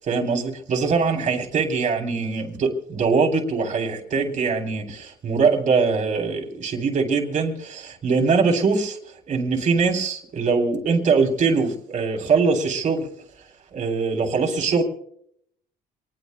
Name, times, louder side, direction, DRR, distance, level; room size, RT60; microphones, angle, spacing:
voice 1, 0.1-9.0 9.3-13.1 13.7-14.8, right 4 dB, 45° right, 3 dB, 3.6 m, -22 dB
27.0 x 20.0 x 2.2 m, 0.70 s
cardioid pair, 110°, 17 cm